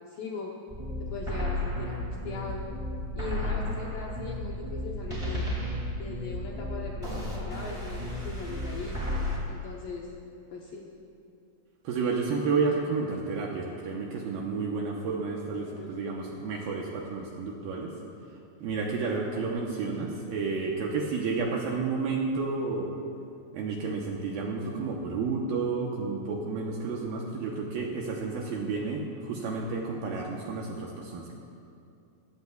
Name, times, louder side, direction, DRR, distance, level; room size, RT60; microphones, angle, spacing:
voice 1, 0.1-0.5 1.0-2.6 3.2-5.5 6.0-9.0 9.5-10.1 10.5-10.9 15.5-16.3 19.1-19.4, left 4 dB, 75° left, -2 dB, 2.1 m, -40 dB
sound 1, 0.7-9.4, left 1 dB, 50° right, 0.4 m, -33 dB
voice 2, 11.8-17.9 18.6-22.9 23.5-31.3, right 4 dB, 75° right, -1 dB, 2.3 m, -31 dB
22.0 x 16.0 x 2.4 m, 2.5 s
omnidirectional pair, 5.2 m